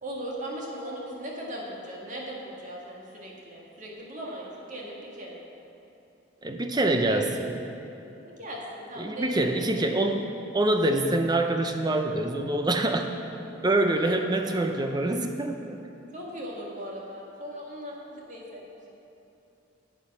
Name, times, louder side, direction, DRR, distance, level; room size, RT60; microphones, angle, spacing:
voice 1, 0.0-5.4 6.7-7.2 8.2-10.0 13.9-14.2 14.5-14.6 16.1-18.9, equal, 40° right, -3 dB, 1.9 m, -39 dB
voice 2, 6.4-7.6 9.0-13.1 13.6-15.8, right 2 dB, 20° right, 5 dB, 0.7 m, -25 dB
9.8 x 9.0 x 6.0 m, 2.8 s
head